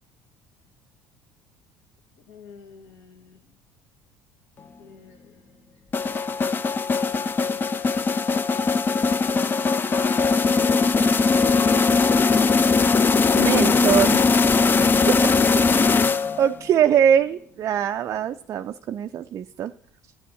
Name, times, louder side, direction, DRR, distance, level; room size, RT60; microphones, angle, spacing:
voice 1, 2.2-3.6 4.8-5.8 6.8-7.4 11.2-12.3, left 6 dB, 60° left, 5 dB, 1.7 m, -45 dB
sound 1, 5.9-16.6, left 4 dB, 25° left, 0.6 m, -20 dB
voice 2, 13.3-14.2 14.9-15.1 16.4-19.7, right 9 dB, 40° right, 8 dB, 0.4 m, -22 dB
13.0 x 9.3 x 4.4 m, 0.69 s
figure-of-eight pair, 60°, 8 cm